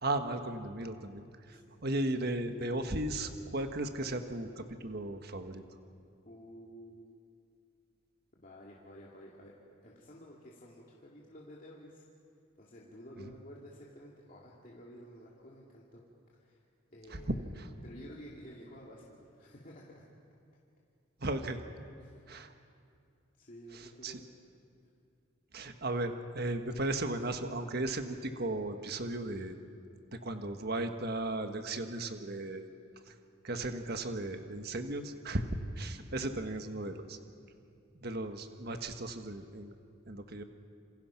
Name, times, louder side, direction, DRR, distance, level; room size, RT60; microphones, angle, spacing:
voice 1, 0.0-5.6 13.2-13.3 17.1-17.2 17.6-17.7 21.2-21.6 22.3-22.5 23.7-24.2 25.5-29.6 30.2-32.7 33.1-33.2 33.4-35.5 35.8-37.2 37.9-39.7 40.1-40.4, right 2 dB, 50° right, 7 dB, 1.4 m, -36 dB
voice 2, 1.5-1.8 6.2-7.2 8.4-9.5 9.8-12.0 12.6-16.0 16.3-16.6 16.9-17.5 17.8-20.0 22.0-22.3 23.4-24.3, equal, 40° left, -4 dB, 2.6 m, -52 dB
28.0 x 27.5 x 5.9 m, 2.4 s
head